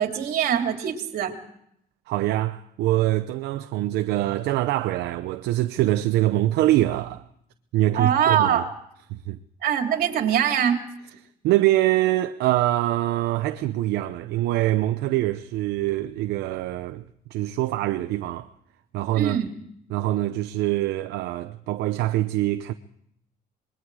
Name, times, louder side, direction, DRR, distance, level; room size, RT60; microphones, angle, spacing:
voice 1, 0.0-1.3 7.9-8.7 9.6-10.8 19.1-19.5, right 9 dB, 65° right, 3.2 m, -23 dB
voice 2, 2.1-7.2 7.7-8.6 9.1-9.4 11.4-17.0 17.3-18.5 18.9-19.4 19.9-22.7, right 15 dB, 85° right, 0.8 m, -24 dB
26.5 x 21.5 x 4.8 m
cardioid pair, 110°, 17 cm